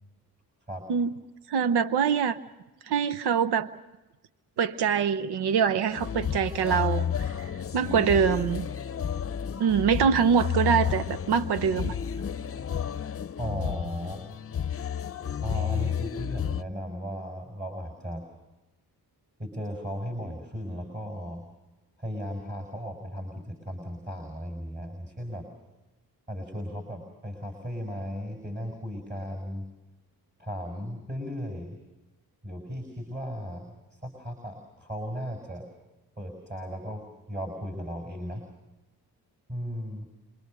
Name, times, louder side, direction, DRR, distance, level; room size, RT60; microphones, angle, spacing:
voice 1, 1.5-2.4 2.9-3.7 4.6-8.7 9.6-11.9, right 7 dB, 90° right, 13 dB, 0.9 m, -24 dB
sound 1, 5.9-16.6, left 8 dB, 35° left, 0.7 m, -31 dB
voice 2, 13.4-14.3 15.4-18.2 19.4-21.4 22.0-25.5 26.3-29.6 30.4-31.8 32.4-35.7 36.2-38.4 39.5-40.1, equal, 25° right, 4 dB, 6.1 m, -36 dB
27.5 x 23.0 x 6.7 m, 1.0 s
cardioid pair, 80°, 38 cm